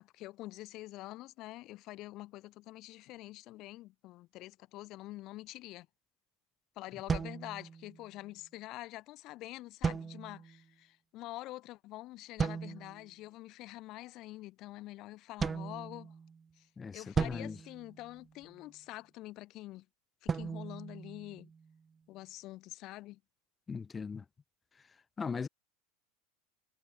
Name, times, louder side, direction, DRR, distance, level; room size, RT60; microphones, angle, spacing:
voice 1, 0.0-5.9 6.8-16.1 16.5-19.9 20.2-21.5 22.1-23.2, left 17 dB, 50° left, 2.8 m, -46 dB
sound 1, 7.1-8.2 9.8-10.6 12.4-13.1 15.4-16.5 17.2-18.6 20.3-21.8, right 5 dB, 25° right, 0.5 m, -37 dB
voice 2, 16.8-17.6 23.7-24.2 25.2-25.5, left 5 dB, 20° left, 1.0 m, -38 dB
hypercardioid pair, 80°, 0 cm